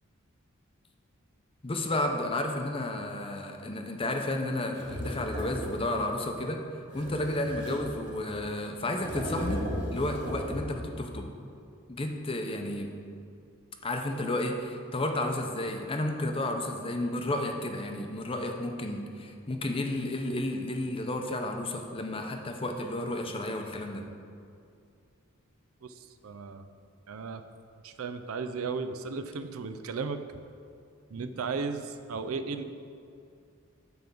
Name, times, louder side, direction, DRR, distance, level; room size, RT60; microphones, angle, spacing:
voice 1, 1.6-6.6 6.9-9.6 9.9-11.3 11.9-12.9 13.8-24.0, left 1 dB, 25° left, 4 dB, 0.7 m, -32 dB
sound 1, 4.7-6.1 6.9-8.4 8.9-10.9, equal, 55° right, 1.8 m, -36 dB
voice 2, 26.2-26.7 27.1-27.4 27.8-30.2 31.1-32.6, right 4 dB, 75° right, 9 dB, 0.5 m, -35 dB
9.4 x 3.5 x 6.9 m, 2.5 s
head